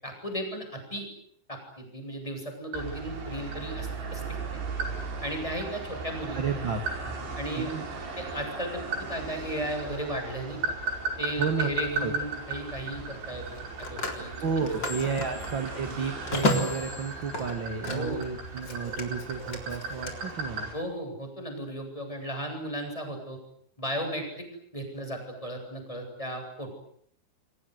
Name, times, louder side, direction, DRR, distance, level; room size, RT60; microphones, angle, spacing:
voice 1, 0.0-1.1 1.5-4.6 5.2-6.5 7.3-7.7 8.2-10.7 11.2-14.3 14.8-14.9 17.9-18.2 20.7-23.4 23.8-24.5 24.7-26.7, equal, 5° left, 3 dB, 7.9 m, -35 dB
sound 1, 2.7-20.8, right 4 dB, 80° right, 7.3 m, -36 dB
voice 2, 6.3-7.1 7.6-7.9 11.4-11.7 12.0-12.1 14.4-20.7, right 5 dB, 35° right, 6 dB, 2.3 m, -32 dB
Telephone, 11.2-11.5 13.4-18.3 18.6-20.1, left 1 dB, 25° left, 4.3 m, -33 dB
29.0 x 24.5 x 8.2 m, 0.64 s
omnidirectional pair, 4.9 m